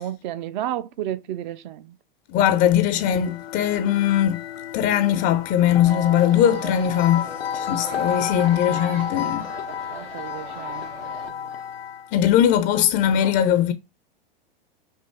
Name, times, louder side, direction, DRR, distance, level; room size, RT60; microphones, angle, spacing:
voice 1, 0.0-2.0 9.5-11.6 13.2-13.4, right 12 dB, 55° right, 0.6 m, -33 dB
voice 2, 2.3-4.4 4.7-7.3 7.5-9.5 12.1-13.7, left 10 dB, 35° left, 0.5 m, -20 dB
sound 1, 2.7-12.2, left 9 dB, 90° left, 0.5 m, -32 dB
sound 2, 5.8-11.3, right 6 dB, 80° right, 1.2 m, -39 dB
5.4 x 2.5 x 3.4 m
hypercardioid pair, 105°, 29 cm